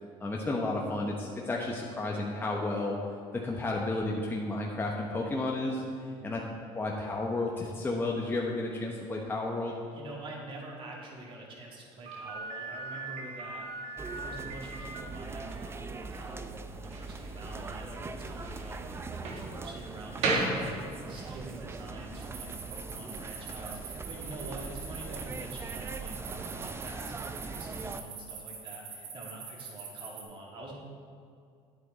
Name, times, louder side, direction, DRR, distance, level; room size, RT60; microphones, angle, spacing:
voice 1, 0.2-3.0 3.3-5.8 6.2-6.4 6.7-9.7, left 2 dB, 15° left, -2 dB, 1.0 m, -32 dB
voice 2, 9.9-30.8, right 2 dB, 45° right, -2 dB, 2.5 m, -46 dB
Slam, 12.0-21.4, right 2 dB, 65° right, 1.9 m, -37 dB
sound 1, 14.0-28.0, right 3 dB, 20° right, 0.5 m, -41 dB
sound 2, 22.2-30.2, right 6 dB, 90° right, 1.9 m, -43 dB
9.7 x 8.2 x 4.1 m, 2.4 s
supercardioid pair, 100°, 12 cm